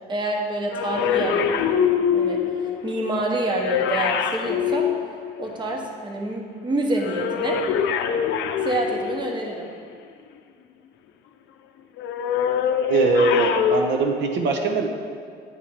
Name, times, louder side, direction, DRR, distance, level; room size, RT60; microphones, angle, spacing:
voice 1, 0.1-1.7 2.1-4.9 5.4-7.6 8.6-9.7, right 1 dB, 25° right, 1 dB, 0.9 m, -27 dB
sound 1, 0.7-5.7 7.0-9.5 12.0-13.8, left 8 dB, 75° left, 0.5 m, -24 dB
voice 2, 12.9-14.9, right 3 dB, 70° right, 3 dB, 0.7 m, -21 dB
8.8 x 3.2 x 5.6 m, 2.3 s
cardioid pair, 125°, 19 cm